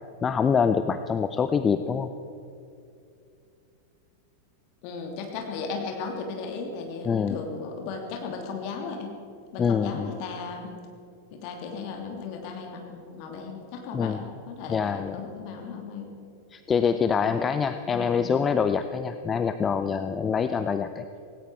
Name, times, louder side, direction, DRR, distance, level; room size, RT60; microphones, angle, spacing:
voice 1, 0.2-2.1 7.0-7.4 9.6-10.1 13.9-14.2 14.7-15.2 16.5-21.1, left 6 dB, 20° left, 10 dB, 0.6 m, -25 dB
voice 2, 4.8-9.1 9.5-10.7 11.3-16.1 17.3-17.4 17.9-18.2, left 5 dB, 45° left, 2 dB, 2.8 m, -36 dB
17.5 x 17.0 x 4.8 m, 2.6 s
figure-of-eight pair, 90°, 0 cm